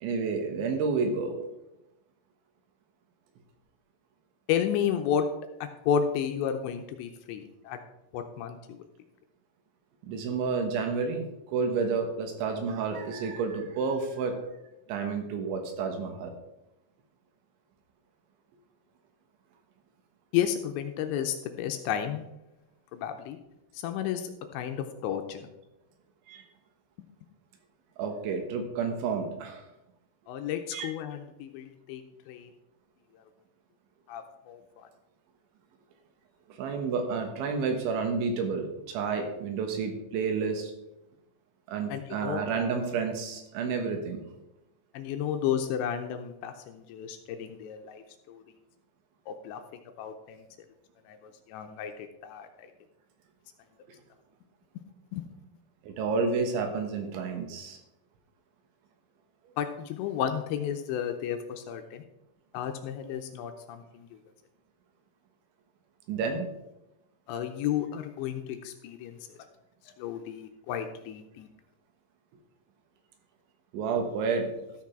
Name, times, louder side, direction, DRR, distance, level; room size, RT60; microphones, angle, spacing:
voice 1, 0.0-1.5 10.0-14.5 14.9-16.3 26.3-26.5 28.0-29.7 30.7-30.9 36.5-40.7 41.7-44.2 55.8-57.8 66.1-66.5 73.7-74.5, right 5 dB, 80° right, 4 dB, 3.6 m, -30 dB
voice 2, 4.5-5.3 5.6-7.8 8.1-8.8 20.3-22.2 22.9-23.4 23.8-25.5 30.3-32.0 32.3-32.5 34.1-34.6 41.9-42.4 44.9-48.4 49.3-49.6 50.0-50.4 51.1-51.2 51.5-52.5 55.1-55.3 59.6-62.0 62.5-64.1 67.3-69.2 70.0-71.5, left 9 dB, 85° left, 6 dB, 2.8 m, -32 dB
13.5 x 6.0 x 4.4 m, 0.90 s
omnidirectional pair, 5.5 m